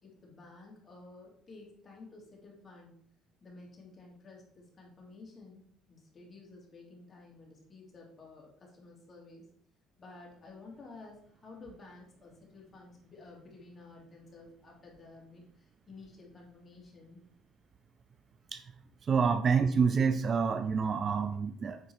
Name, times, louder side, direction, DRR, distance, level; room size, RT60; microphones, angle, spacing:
voice 1, 0.0-2.9 3.4-5.6 5.9-9.5 10.0-17.2, left 3 dB, 25° left, -2 dB, 2.8 m, -52 dB
voice 2, 19.1-21.8, right 5 dB, 35° right, 10 dB, 0.4 m, -27 dB
9.4 x 3.8 x 4.7 m, 0.64 s
cardioid pair, 135°, 0 cm